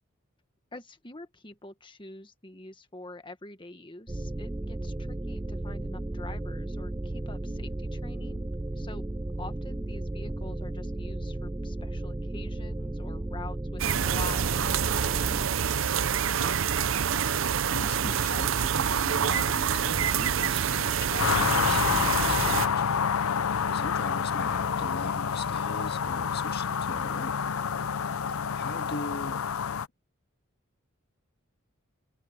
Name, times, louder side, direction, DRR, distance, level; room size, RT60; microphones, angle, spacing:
voice 1, 0.7-8.5 8.7-9.1 9.4-15.3, left 2 dB, 25° left, 1.6 m, -45 dB
sound 1, 4.1-15.5, right 1 dB, 15° right, 0.4 m, -34 dB
sound 2, 13.8-22.7, right 8 dB, 65° right, 0.6 m, -27 dB
voice 2, 16.3-16.6 17.3-22.8 23.7-27.4 28.5-29.4, left 2 dB, 50° left, 2.0 m, -39 dB
sound 3, 21.2-29.9, left 7 dB, 80° left, 0.6 m, -28 dB
head